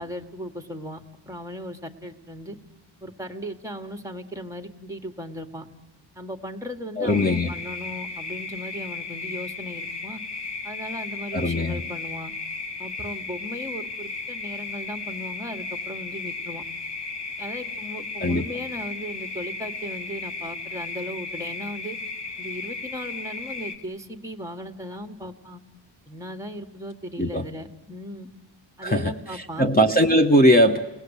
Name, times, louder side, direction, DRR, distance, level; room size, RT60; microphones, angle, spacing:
voice 1, 0.0-2.6 3.0-5.7 6.2-10.2 10.6-12.3 12.8-16.6 17.4-22.0 22.4-25.6 26.1-28.3 28.8-29.7, equal, 5° right, 6 dB, 1.7 m, -37 dB
voice 2, 7.0-7.5 11.3-11.8 18.2-18.4 27.2-27.4 28.8-30.8, equal, 20° left, 4 dB, 1.1 m, -20 dB
sound 1, 7.1-23.7, left 3 dB, 65° left, 1.9 m, -35 dB
29.5 x 19.5 x 8.2 m, 0.99 s
wide cardioid pair, 140°, 45 cm